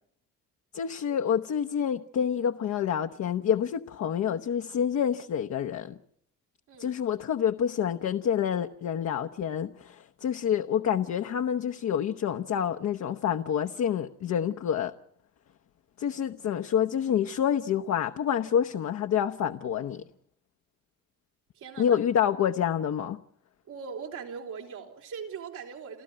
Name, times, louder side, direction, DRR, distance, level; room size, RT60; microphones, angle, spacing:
voice 1, 0.7-6.0 6.8-14.9 16.0-20.0 21.8-23.2, left 8 dB, 60° left, 0.9 m, -28 dB
voice 2, 21.5-22.0 23.7-26.0, right 6 dB, 85° right, 3.9 m, -40 dB
29.5 x 13.5 x 8.7 m
cardioid pair, 90°, 30 cm